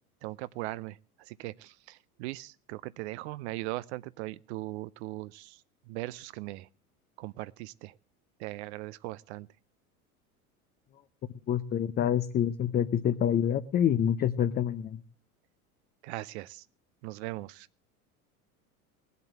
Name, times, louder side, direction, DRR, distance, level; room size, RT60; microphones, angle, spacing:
voice 1, 0.2-5.6 5.9-6.7 7.2-7.9 8.4-9.5 16.0-16.6 17.0-17.7, right 19 dB, 50° right, 18 dB, 0.6 m, -39 dB
voice 2, 11.5-15.0, left 9 dB, 20° left, 11 dB, 0.6 m, -27 dB
19.0 x 8.1 x 7.4 m, 0.43 s
figure-of-eight pair, 80°, 44 cm